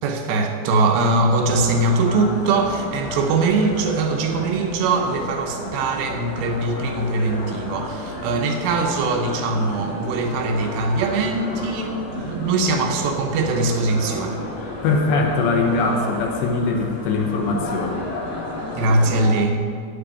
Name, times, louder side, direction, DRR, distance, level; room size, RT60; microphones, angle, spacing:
voice 1, 0.0-14.4 18.8-19.6, right 3 dB, 80° right, 4 dB, 2.8 m, -21 dB
sound 1, 1.4-19.3, left 2 dB, 50° left, 1.6 m, -32 dB
voice 2, 14.8-18.0, left 3 dB, 75° left, 2 dB, 3.2 m, -21 dB
8.8 x 7.9 x 8.2 m, 2.2 s
omnidirectional pair, 5.3 m